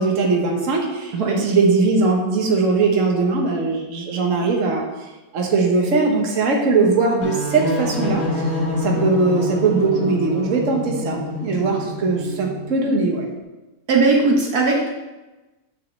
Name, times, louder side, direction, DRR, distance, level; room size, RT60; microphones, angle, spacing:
voice 1, 0.0-4.8 5.3-13.3, right 3 dB, 55° right, 1 dB, 1.5 m, -20 dB
sound 1, 7.2-12.7, left 2 dB, 50° left, 1.7 m, -27 dB
voice 2, 13.9-14.9, right 3 dB, 70° right, 0 dB, 1.5 m, -18 dB
6.4 x 5.2 x 6.5 m, 1.1 s
omnidirectional pair, 1.7 m